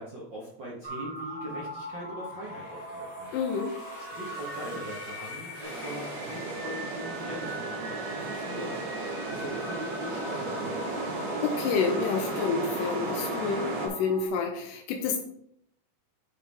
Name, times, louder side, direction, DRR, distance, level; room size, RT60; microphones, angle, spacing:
voice 1, 0.0-8.9 9.3-11.1, equal, 60° right, -5 dB, 1.2 m, -41 dB
sound 1, 0.8-14.3, equal, 20° right, 2.6 m, -41 dB
sound 2, 2.3-7.2, left 2 dB, 50° left, 3.6 m, -47 dB
voice 2, 3.3-3.7 11.4-15.2, left 5 dB, 80° left, 2 dB, 2.2 m, -29 dB
sound 3, 5.6-13.9, right 3 dB, 85° right, 3.9 m, -34 dB
9.5 x 5.3 x 3.4 m, 0.68 s
omnidirectional pair, 4.2 m